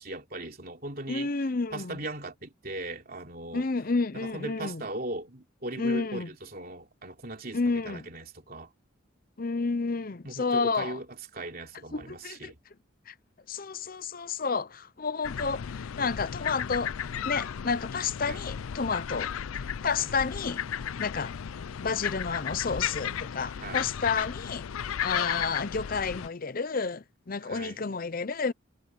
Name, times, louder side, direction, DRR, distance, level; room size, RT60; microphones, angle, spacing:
voice 1, 0.0-1.3 1.7-3.7 4.1-7.6 7.8-8.7 10.2-11.1 11.3-12.6 18.3-18.4 20.0-20.1 23.6-23.9 27.4-27.8, right 2 dB, 45° right, 3.2 m, -38 dB
voice 2, 1.1-2.0 3.5-4.8 5.8-6.3 7.5-8.1 9.4-11.0 11.9-12.5 13.1-13.2 13.5-20.6 21.0-21.4 21.8-28.5, left 4 dB, 45° left, 0.7 m, -31 dB
sound 1, 15.2-26.3, left 8 dB, 85° left, 0.5 m, -34 dB
head